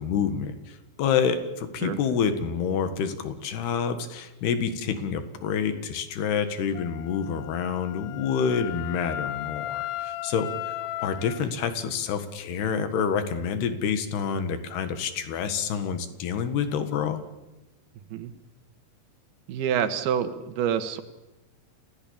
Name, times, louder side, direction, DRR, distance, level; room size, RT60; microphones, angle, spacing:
voice 1, 0.0-17.2, left 7 dB, 90° left, 9 dB, 3.8 m, -28 dB
Wind instrument woodwind instrument, 6.7-11.4, left 14 dB, 70° left, 2.0 m, -35 dB
voice 2, 19.5-21.0, right 8 dB, 80° right, 10 dB, 3.2 m, -27 dB
30.0 x 16.0 x 8.7 m, 1.0 s
omnidirectional pair, 4.5 m